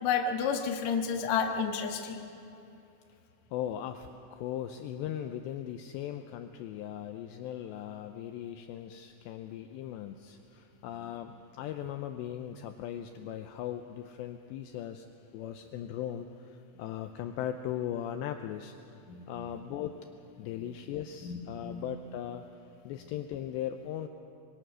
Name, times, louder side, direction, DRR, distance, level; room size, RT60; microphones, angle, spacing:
voice 1, 0.0-2.2 19.1-19.5 20.6-20.7 21.2-21.8, left 6 dB, 65° left, 3 dB, 1.8 m, -31 dB
voice 2, 3.5-15.1 15.3-18.8 19.3-20.0 20.4-22.4 22.8-24.1, left 10 dB, 90° left, 7 dB, 2.5 m, -38 dB
25.0 x 23.0 x 6.3 m, 2.8 s
omnidirectional pair, 5.9 m